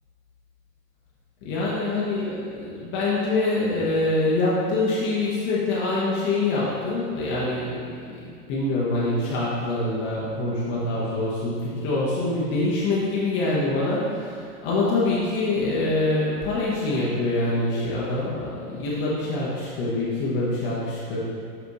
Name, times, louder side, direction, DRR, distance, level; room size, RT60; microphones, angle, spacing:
voice 1, 1.4-21.2, left 2 dB, 25° left, -7 dB, 1.1 m, -25 dB
8.5 x 3.4 x 4.1 m, 2.3 s
hypercardioid pair, 125°, 47 cm